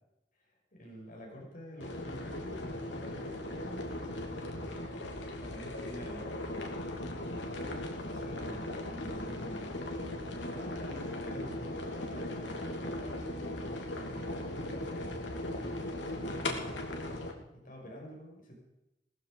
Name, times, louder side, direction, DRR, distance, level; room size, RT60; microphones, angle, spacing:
voice 1, 0.7-4.5 4.9-6.4 7.3-9.8 10.5-15.2 15.9-18.5, equal, 50° left, -2 dB, 6.1 m, -48 dB
sound 1, 1.8-17.3, left 1 dB, 85° left, 3.0 m, -38 dB
18.5 x 14.5 x 5.1 m, 0.92 s
head